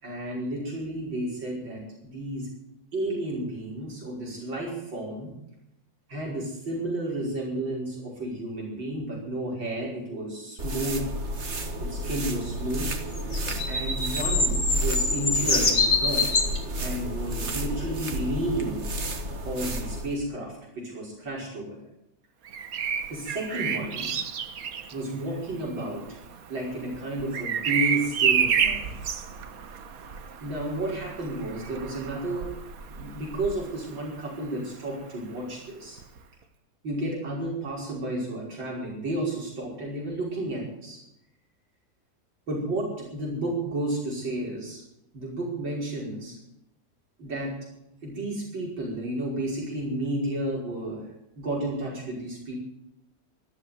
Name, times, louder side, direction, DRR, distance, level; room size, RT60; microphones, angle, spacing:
voice 1, 0.0-2.5 2.9-5.3 6.1-11.1 11.8-12.9 13.6-16.3 16.8-18.9 19.4-21.8 23.1-24.1 24.9-26.2 26.5-28.9 30.4-32.5 32.9-36.0 36.8-41.0 42.5-44.8 45.1-46.4 47.2-47.5 48.0-51.1 51.4-52.5, right 1 dB, 85° right, -3 dB, 6.0 m, -32 dB
sound 1, 10.6-20.2, equal, 40° right, 1.8 m, -31 dB
sound 2, 13.2-16.6 17.5-17.6, left 3 dB, 45° left, 2.9 m, -24 dB
Bird vocalization bird call bird song, 22.4-34.3 36.0-36.2, right 7 dB, 55° right, 1.4 m, -30 dB
13.5 x 13.0 x 8.0 m, 0.84 s
omnidirectional pair, 2.0 m